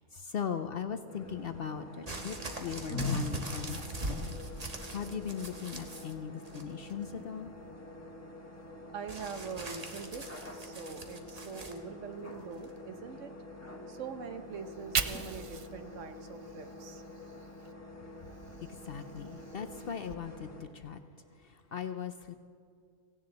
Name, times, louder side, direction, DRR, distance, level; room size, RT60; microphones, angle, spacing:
voice 1, 0.0-4.3 4.6-7.5 18.6-21.0 21.3-22.3, left 7 dB, 60° left, 8 dB, 0.7 m, -39 dB
sound 1, 1.1-20.6, left 2 dB, 10° left, 1.6 m, -45 dB
sound 2, 2.1-6.1 6.4-7.0 9.1-11.8 12.6-12.7, right 2 dB, 30° right, 1.3 m, -42 dB
voice 2, 8.9-10.2 10.5-13.3 13.9-17.0, right 5 dB, 65° right, 8 dB, 1.3 m, -43 dB
Fire, 14.6-17.7 18.1-20.1, right 5 dB, 50° right, 0.3 m, -40 dB
17.0 x 16.5 x 4.0 m, 2.5 s
omnidirectional pair, 1.4 m